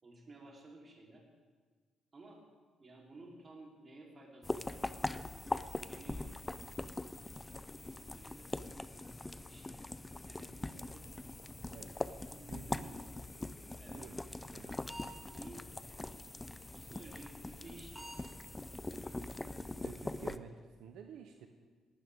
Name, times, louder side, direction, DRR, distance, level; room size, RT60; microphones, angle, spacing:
voice 1, 0.0-1.3 2.1-2.5 2.8-6.3 8.1-9.0 9.5-9.9 10.3-11.1 12.3-13.0 13.8-14.0 15.3-15.7 16.7-18.1 18.9-19.7, right 2 dB, 35° right, -2 dB, 3.6 m, -55 dB
sound 1, 4.4-20.4, left 2 dB, 15° left, 0.5 m, -42 dB
voice 2, 13.9-14.2 14.5-14.8 19.8-21.5, right 8 dB, 85° right, 5 dB, 0.8 m, -51 dB
sound 2, 14.1-15.2 15.5-15.7 16.0-16.2 16.5-16.7 17.1-17.2 17.6-17.7 18.0-18.2 18.6-18.7 19.1-19.2 19.6-19.7 20.1-20.3, equal, 5° right, 2.4 m, -49 dB
18.5 x 13.0 x 3.6 m, 1.5 s
cardioid pair, 90°, 0 cm